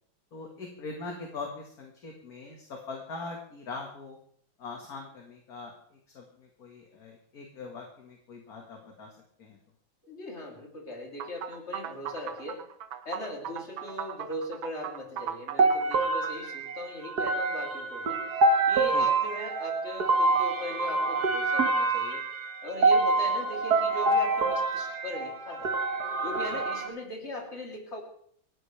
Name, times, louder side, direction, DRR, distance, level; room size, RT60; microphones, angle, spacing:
voice 1, 0.3-4.2 4.6-9.6 18.9-19.1 26.5-26.6, left 3 dB, 50° left, 1 dB, 2.1 m, -42 dB
voice 2, 10.0-12.7 13.1-18.2 18.7-22.3 22.6-25.7 26.2-28.0, left 1 dB, 30° left, 0 dB, 3.3 m, -39 dB
sound 1, 11.2-16.3, right 9 dB, 75° right, 1.7 m, -38 dB
sound 2, 15.6-26.9, right 3 dB, 55° right, 1.9 m, -26 dB
28.0 x 11.5 x 3.3 m, 0.64 s
omnidirectional pair, 2.2 m